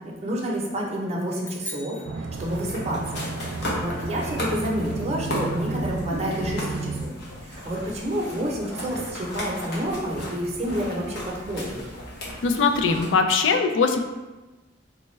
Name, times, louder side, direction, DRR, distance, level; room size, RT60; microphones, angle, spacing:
voice 1, 0.2-3.2 3.6-7.1 7.5-11.8, equal, 35° right, -3 dB, 0.6 m, -29 dB
sound 1, 1.4-3.1, left 1 dB, 10° left, 0.4 m, -41 dB
sound 2, 2.0-7.1, right 4 dB, 70° right, 0.3 m, -33 dB
sound 3, 2.4-13.1, left 1 dB, 60° left, 0.9 m, -35 dB
voice 2, 12.4-14.0, left 4 dB, 80° left, 5 dB, 0.4 m, -21 dB
4.0 x 2.2 x 3.1 m, 1.1 s
head